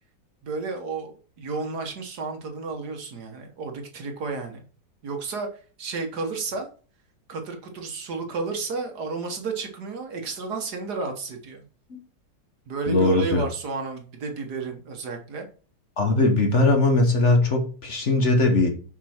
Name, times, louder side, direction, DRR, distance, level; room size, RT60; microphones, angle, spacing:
voice 1, 0.4-4.6 5.0-6.7 7.3-11.7 12.7-15.5, right 4 dB, 65° right, 4 dB, 1.8 m, -32 dB
voice 2, 12.9-13.4 16.0-18.7, left 2 dB, 45° left, 4 dB, 1.3 m, -20 dB
6.3 x 5.4 x 4.4 m, 0.39 s
omnidirectional pair, 1.9 m